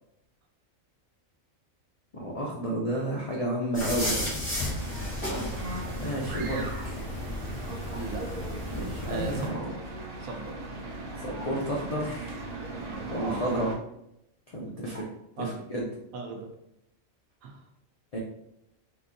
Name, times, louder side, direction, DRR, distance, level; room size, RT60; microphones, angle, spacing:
voice 1, 2.1-4.4 5.1-5.2 6.0-7.1 8.7-9.7 11.2-12.4 13.1-13.7 14.5-15.1 15.4-15.9 18.1-18.2, right 1 dB, 65° left, -3 dB, 0.3 m, -31 dB
sound 1, 3.7-9.5, left 1 dB, 25° left, 1.3 m, -34 dB
sound 2, 4.6-13.8, right 2 dB, 50° right, 0.4 m, -39 dB
voice 2, 5.3-5.6 7.9-8.3 9.0-9.7 10.2-10.6 13.1-13.4 15.4-15.5 16.1-16.5 17.4-17.6, right 4 dB, 80° right, 2 dB, 1.0 m, -37 dB
sound 3, 5.8-6.2 7.9-8.3 9.5-9.9 11.4-11.8 13.5-13.9 14.9-15.2, right 1 dB, 30° right, 1.1 m, -48 dB
3.8 x 2.6 x 2.6 m, 0.81 s
omnidirectional pair, 1.4 m